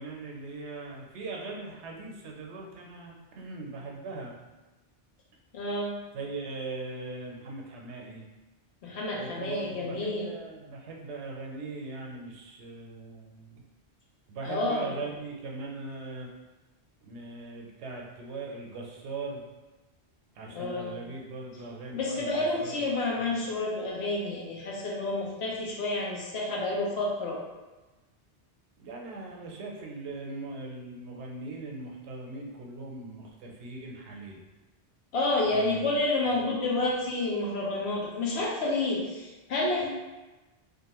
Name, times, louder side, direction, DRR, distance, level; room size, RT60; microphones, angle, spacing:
voice 1, 0.0-4.3 6.1-8.2 9.1-13.6 14.3-16.3 17.0-19.4 20.3-23.4 28.8-34.4 35.5-35.9 36.2-36.8, right 3 dB, 85° right, 0 dB, 0.9 m, -40 dB
voice 2, 5.5-6.0 8.8-10.3 14.4-14.9 20.5-21.0 21.9-27.4 35.1-39.9, left 2 dB, 75° left, -3 dB, 0.9 m, -29 dB
2.5 x 2.4 x 2.9 m, 1.1 s
omnidirectional pair, 1.1 m